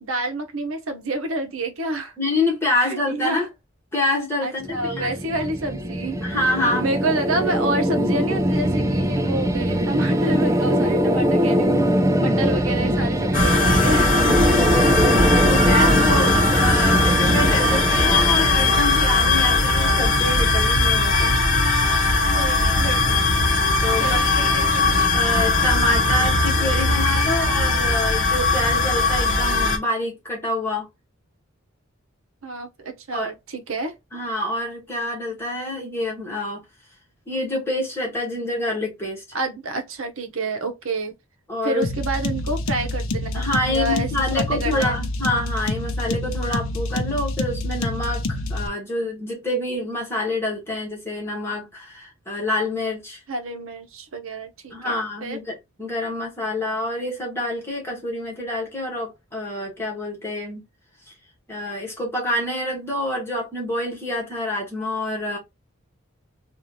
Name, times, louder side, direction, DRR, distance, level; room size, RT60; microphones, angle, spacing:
voice 1, 0.0-2.2 2.7-3.5 4.4-6.2 6.8-11.8 12.2-14.2 22.3-23.2 24.0-25.1 32.4-34.0 39.3-41.1 41.6-45.0 53.3-54.9 55.2-55.4, right 2 dB, 70° right, 0.9 m, -28 dB
voice 2, 2.2-3.4 3.9-5.1 6.2-6.9 13.5-21.7 23.8-24.2 25.1-30.9 33.1-33.3 34.1-36.6 37.3-39.2 41.5-41.8 43.3-53.2 54.7-60.6 61.1-61.2 61.5-65.4, left 1 dB, 10° left, 1.3 m, -27 dB
sound 1, 4.6-19.7, equal, 15° right, 0.3 m, -22 dB
sound 2, 13.3-29.8, left 2 dB, 40° left, 0.9 m, -19 dB
sound 3, 41.8-48.7, left 2 dB, 70° left, 0.7 m, -27 dB
3.0 x 2.5 x 4.0 m
head